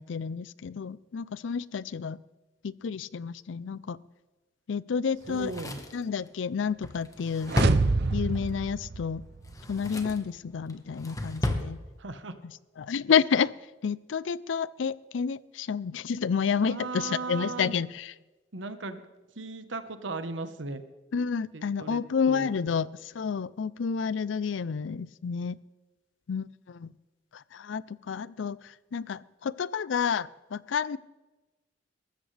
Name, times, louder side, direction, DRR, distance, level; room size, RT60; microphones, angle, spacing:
voice 1, 0.0-2.2 2.6-4.0 4.7-5.5 5.9-7.5 8.1-9.2 9.7-11.8 12.8-13.5 13.8-18.1 21.1-25.6 26.3-26.9 27.3-31.0, left 6 dB, 80° left, 20 dB, 0.4 m, -30 dB
Drawer open or close, 5.2-8.5 9.4-10.3 10.7-11.7 12.0-12.1, left 1 dB, 20° left, 1.3 m, -33 dB
voice 2, 5.3-5.8 12.0-12.3 16.6-17.8 18.5-19.0 19.4-20.8 21.5-22.0 22.3-22.5, right 3 dB, 80° right, 10 dB, 1.2 m, -36 dB
sound 1, 7.5-9.6, right 3 dB, 60° right, 0.6 m, -27 dB
22.0 x 13.5 x 3.3 m, 1.1 s
head